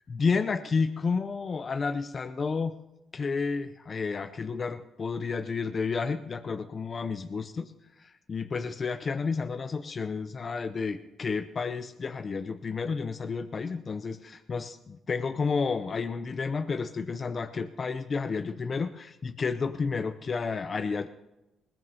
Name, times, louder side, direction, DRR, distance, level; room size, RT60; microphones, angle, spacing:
voice 1, 0.1-2.8 3.1-7.7 8.0-21.1, left 5 dB, 40° left, 9 dB, 0.6 m, -31 dB
20.5 x 18.0 x 2.9 m, 0.97 s
cardioid pair, 90°, 0 cm